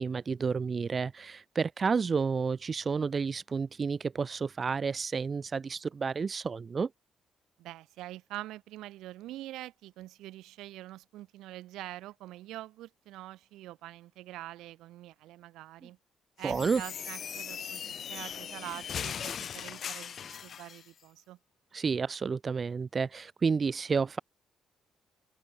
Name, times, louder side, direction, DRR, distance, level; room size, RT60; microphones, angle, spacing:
voice 1, 0.0-6.9 16.4-16.8 21.7-24.2, right 5 dB, 40° right, 0.3 m, -30 dB
voice 2, 7.6-16.0 16.4-17.8 18.1-21.4, right 15 dB, 90° right, 3.6 m, -45 dB
sound 1, 16.4-20.8, left 8 dB, 55° left, 0.4 m, -39 dB
open air
cardioid pair, 90°, 0 cm